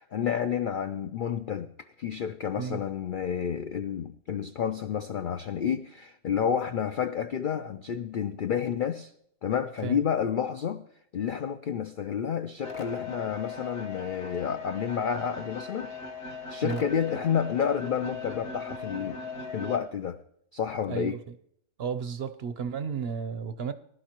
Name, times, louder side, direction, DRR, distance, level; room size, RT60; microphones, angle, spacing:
voice 1, 0.0-1.7 2.0-9.1 9.4-10.8 11.1-15.9 16.5-19.2 19.5-20.2 20.5-21.2, left 8 dB, 70° left, 0.5 m, -30 dB
sound 1, 12.6-19.8, left 4 dB, 45° left, 1.6 m, -39 dB
voice 2, 20.9-21.2 21.8-23.7, right 6 dB, 55° right, 0.8 m, -33 dB
19.0 x 11.5 x 2.9 m
omnidirectional pair, 1.4 m